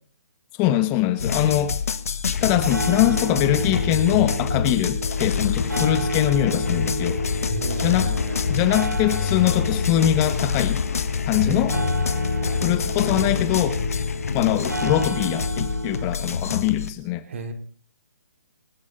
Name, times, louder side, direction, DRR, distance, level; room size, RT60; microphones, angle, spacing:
voice 1, 0.6-1.8 2.4-7.2 7.8-8.1 8.5-10.8 11.2-11.8 12.6-13.8 14.3-17.2, left 13 dB, 20° left, 10 dB, 1.3 m, -22 dB
sound 1, 1.2-16.9, left 6 dB, 60° left, 1.6 m, -26 dB
sound 2, 2.5-16.1, right 2 dB, 90° right, 0.9 m, -32 dB
voice 2, 7.5-8.6 11.4-12.6 17.3-17.5, right 4 dB, 45° right, 5 dB, 3.9 m, -35 dB
26.5 x 12.0 x 4.1 m, 0.42 s
figure-of-eight pair, 140°, 9 cm